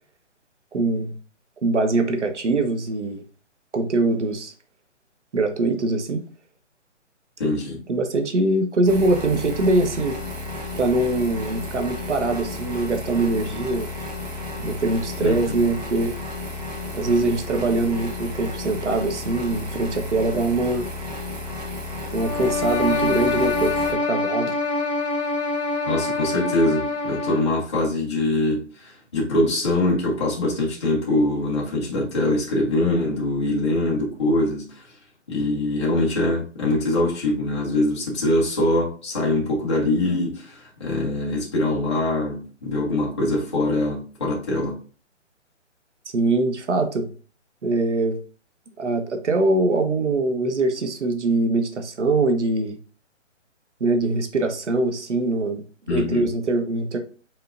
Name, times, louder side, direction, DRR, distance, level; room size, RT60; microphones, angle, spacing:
voice 1, 0.7-1.1 1.6-3.2 3.7-4.5 5.3-6.2 7.9-10.2 10.7-13.9 14.6-16.1 16.9-20.9 22.1-24.5 46.1-47.1 47.6-48.2 48.8-52.8 53.8-55.6 55.9-57.0, right 2 dB, 70° right, 6 dB, 1.2 m, -23 dB
voice 2, 7.4-7.8 15.2-15.5 25.9-34.9 35.3-44.8 55.9-56.3, left 2 dB, 20° left, -4 dB, 1.0 m, -23 dB
sound 1, 8.9-23.9, left 2 dB, 35° right, 1.1 m, -33 dB
sound 2, 22.2-27.6, left 3 dB, 60° left, 1.4 m, -25 dB
5.6 x 3.6 x 2.6 m, 0.39 s
hypercardioid pair, 170°, 37 cm